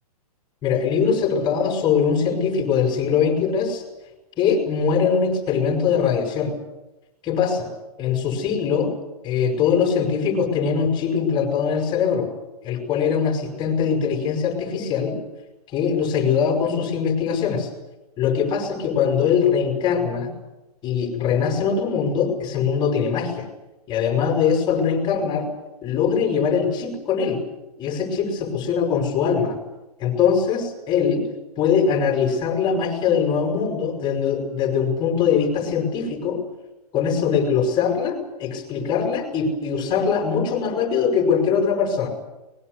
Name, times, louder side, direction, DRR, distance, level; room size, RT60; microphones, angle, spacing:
voice 1, 0.6-3.8 4.4-6.5 7.2-7.7 8.0-8.9 9.2-12.3 12.6-15.1 15.7-17.7 18.2-20.3 20.8-23.5 23.9-25.5 25.8-27.4 27.8-29.6 30.0-31.2 31.6-36.4 36.9-42.1, left 6 dB, 20° left, 4 dB, 6.6 m, -22 dB
24.5 x 21.0 x 8.4 m, 0.97 s
hypercardioid pair, 140°, 20 cm